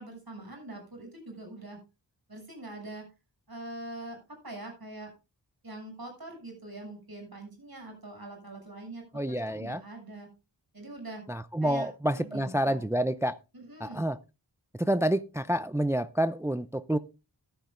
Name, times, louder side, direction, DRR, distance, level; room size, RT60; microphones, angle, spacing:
voice 1, 0.0-1.8 2.3-3.1 3.5-5.1 5.6-10.3 10.7-11.2 11.6-12.8 13.5-14.0, right 2 dB, 55° right, 6.9 m, -43 dB
voice 2, 9.1-9.8 11.3-13.4 13.8-14.2 14.8-17.0, right 1 dB, 5° right, 0.5 m, -28 dB
14.5 x 12.5 x 2.5 m
wide cardioid pair, 45°, 43 cm